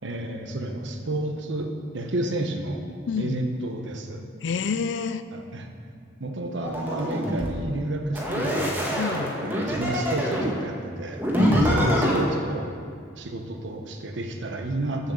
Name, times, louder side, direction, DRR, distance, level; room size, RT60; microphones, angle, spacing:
voice 1, 0.0-2.9 3.2-4.2 5.3-5.7 6.2-8.9 9.4-11.2 11.7-12.7 13.2-15.1, right 1 dB, 80° right, 4 dB, 0.9 m, -30 dB
voice 2, 3.1-3.4 4.4-5.2 9.0-9.4 11.4-11.9, left 5 dB, 70° left, 12 dB, 0.4 m, -28 dB
sound 1, 6.6-7.5 8.1-10.5 11.2-12.2, equal, 10° right, 1.3 m, -24 dB
6.9 x 6.3 x 7.0 m, 2.2 s
head